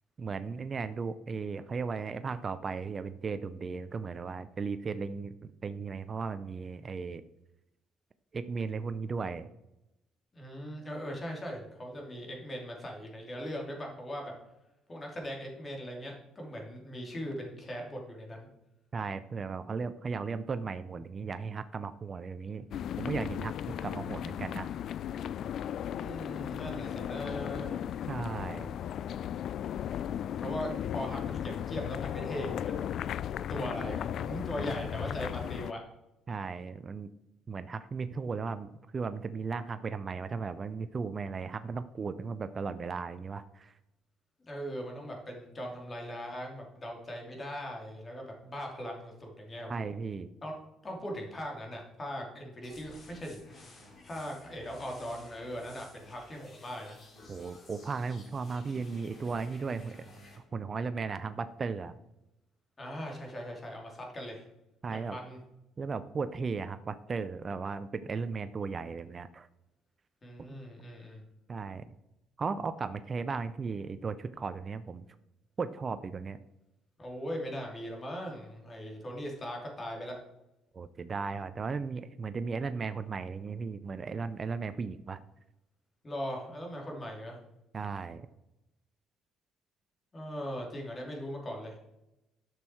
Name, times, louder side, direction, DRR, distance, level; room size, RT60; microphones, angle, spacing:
voice 1, 0.2-7.2 8.3-9.5 18.9-22.7 23.0-24.7 28.1-28.7 36.3-37.1 37.5-43.7 49.7-50.3 57.3-60.0 60.5-61.9 64.8-65.2 65.8-69.5 71.5-71.9 72.4-75.0 75.6-76.4 80.7-85.2 87.7-88.3, right 5 dB, 35° right, 11 dB, 0.5 m, -36 dB
voice 2, 10.3-14.3 14.9-18.5 25.9-27.8 30.4-32.9 33.5-35.8 44.4-50.0 50.4-50.5 50.8-57.0 62.8-64.4 64.9-65.4 70.2-71.2 77.0-80.2 86.0-87.4 90.1-91.8, equal, 25° left, 0 dB, 2.8 m, -40 dB
sound 1, 22.7-35.7, left 10 dB, 60° left, 0.3 m, -36 dB
sound 2, 52.6-60.4, left 2 dB, 40° left, 3.2 m, -54 dB
11.0 x 6.3 x 4.5 m, 0.90 s
cardioid pair, 105°, 0 cm